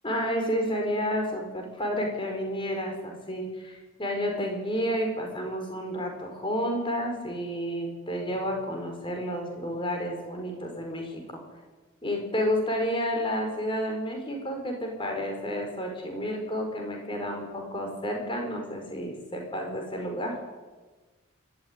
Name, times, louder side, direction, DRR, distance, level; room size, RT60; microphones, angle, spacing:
voice 1, 0.0-11.4 12.0-20.4, equal, 25° left, 2 dB, 4.8 m, -30 dB
25.5 x 13.5 x 9.8 m, 1.3 s
head